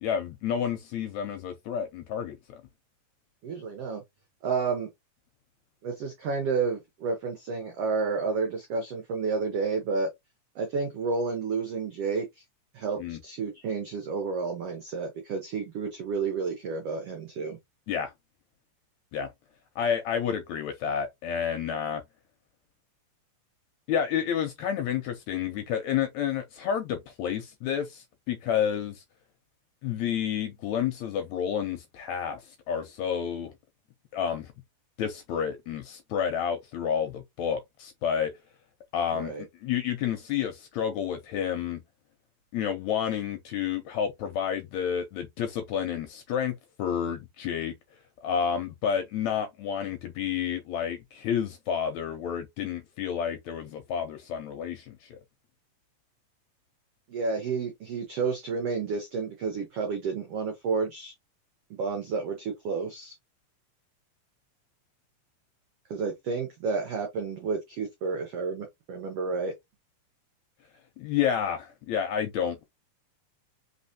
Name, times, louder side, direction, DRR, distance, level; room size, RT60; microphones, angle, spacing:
voice 1, 0.0-2.6 13.0-13.2 17.9-18.1 19.1-19.3 19.8-22.0 23.9-29.0 29.8-33.5 34.1-34.5 35.0-38.3 38.9-41.8 42.5-47.7 48.2-55.2 71.0-72.6, left 8 dB, 75° left, 1.8 m, -30 dB
voice 2, 3.4-4.0 4.4-4.9 5.8-10.1 10.5-12.3 12.7-17.6 39.1-39.4 57.1-61.1 61.7-63.1 65.9-69.5, right 4 dB, 65° right, 1.6 m, -30 dB
4.2 x 4.0 x 2.8 m
omnidirectional pair, 3.8 m